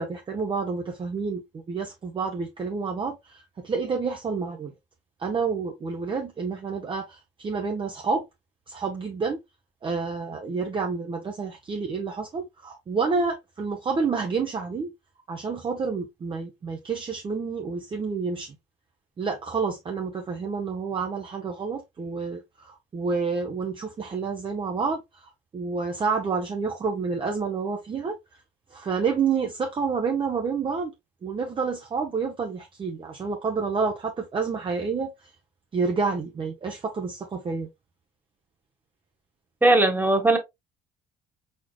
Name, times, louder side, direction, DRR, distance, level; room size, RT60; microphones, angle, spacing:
voice 1, 0.0-4.7 5.2-8.2 8.7-9.4 9.8-14.9 15.3-18.5 19.2-28.2 28.7-30.9 31.2-35.1 35.7-37.7, right 5 dB, 30° right, 0.8 m, -29 dB
voice 2, 39.6-40.4, right 2 dB, 10° right, 1.4 m, -19 dB
4.5 x 4.3 x 2.2 m
cardioid pair, 110°, 17 cm